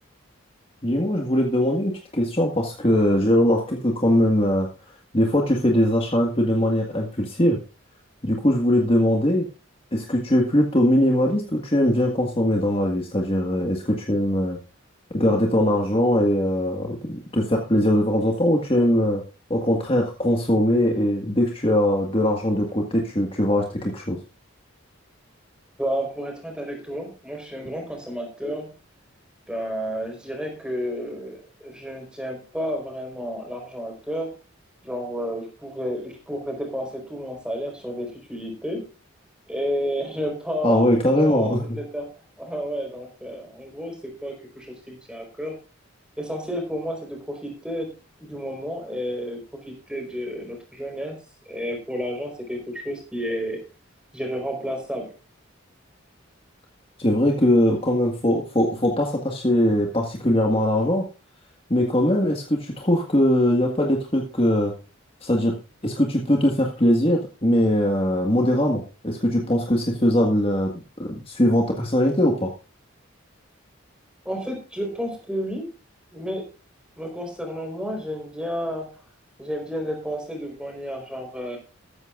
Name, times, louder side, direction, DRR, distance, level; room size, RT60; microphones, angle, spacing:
voice 1, 0.8-4.7 5.1-7.6 8.2-9.5 9.9-14.6 15.1-19.2 19.5-24.2 40.6-41.8 57.0-61.0 61.7-64.7 65.2-65.5 65.8-70.7 71.0-72.5, left 1 dB, 25° left, 1 dB, 1.7 m, -21 dB
voice 2, 25.8-28.7 29.5-34.3 34.8-38.9 39.5-42.1 42.4-45.6 46.2-47.9 48.2-51.2 51.5-53.6 54.1-55.1 74.2-75.7 76.1-76.5 77.0-79.0 79.4-81.6, equal, 5° right, 2 dB, 4.5 m, -31 dB
14.0 x 14.0 x 2.5 m, 0.33 s
head